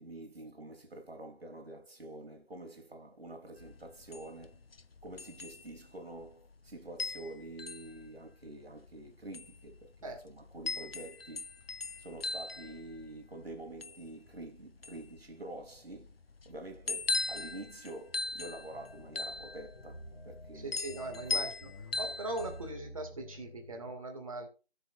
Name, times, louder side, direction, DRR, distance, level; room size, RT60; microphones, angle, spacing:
voice 1, 0.0-4.6 5.0-11.5 12.0-16.2 16.4-20.8 21.3-21.5, right 1 dB, 60° right, 3.2 m, -47 dB
sound 1, 3.6-22.7, left 3 dB, 60° left, 0.8 m, -40 dB
sound 2, 18.7-23.9, equal, 10° left, 3.5 m, -50 dB
voice 2, 20.5-21.5 22.0-24.5, right 2 dB, 30° right, 2.4 m, -40 dB
18.5 x 6.8 x 2.6 m
figure-of-eight pair, 170°, 33 cm